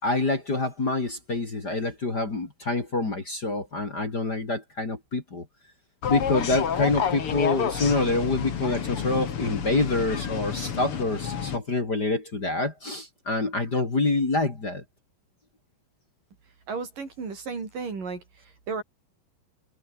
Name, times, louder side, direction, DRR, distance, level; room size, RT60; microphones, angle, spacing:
voice 1, 0.0-5.5 6.1-14.8, left 2 dB, 30° left, 3.5 m, -26 dB
sound 1, 6.0-11.6, left 7 dB, 45° left, 2.5 m, -29 dB
voice 2, 16.7-18.2 18.7-18.8, right 4 dB, 65° right, 7.1 m, -33 dB
omnidirectional pair, 4.1 m